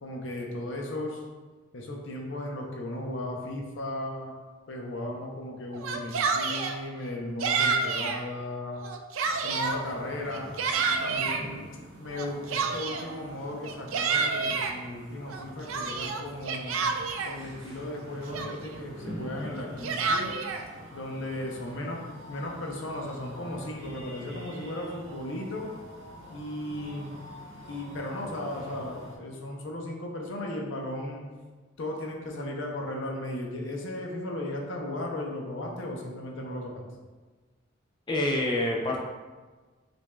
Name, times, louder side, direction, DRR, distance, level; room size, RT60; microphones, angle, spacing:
voice 1, 0.0-1.3 1.7-4.3 4.7-8.8 9.4-10.5 11.0-11.7 12.0-16.8 17.2-20.3 20.9-22.0 22.3-25.7 26.3-27.1 27.7-31.2 31.8-36.8, left 1 dB, 65° left, 0 dB, 0.6 m, -36 dB
Yell, 5.7-6.8 7.4-8.2 8.7-9.8 10.3-11.4 12.2-13.1 13.6-14.7 15.3-17.4 18.0-18.1 18.3-18.8 19.6-20.6, right 4 dB, 80° right, 0.4 m, -29 dB
sound 1, 9.2-29.2, equal, 65° right, 0.9 m, -46 dB
voice 2, 38.1-39.0, left 1 dB, 25° left, -1 dB, 0.4 m, -26 dB
5.9 x 2.6 x 2.2 m, 1.3 s
head